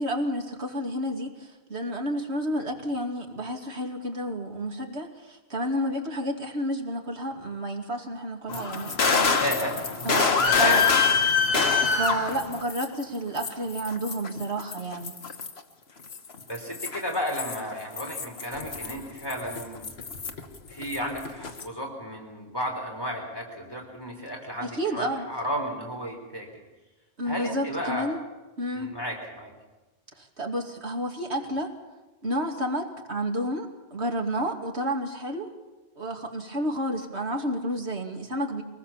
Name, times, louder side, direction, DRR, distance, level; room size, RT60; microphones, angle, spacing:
voice 1, 0.0-9.4 10.0-10.8 11.8-15.1 24.6-25.3 27.2-28.2 28.6-28.9 30.2-31.7 32.2-35.5 36.0-38.6, right 1 dB, 90° right, 2 dB, 2.7 m, -30 dB
sound 1, 8.5-13.0 13.4-15.6 16.1-20.6 20.8-21.6, left 5 dB, 70° left, 1.7 m, -25 dB
voice 2, 9.4-9.8 10.5-10.9 16.5-19.9 20.7-26.6 27.3-28.1 28.7-29.5, equal, 20° left, 1 dB, 3.6 m, -33 dB
24.0 x 19.0 x 7.2 m, 1.2 s
omnidirectional pair, 1.1 m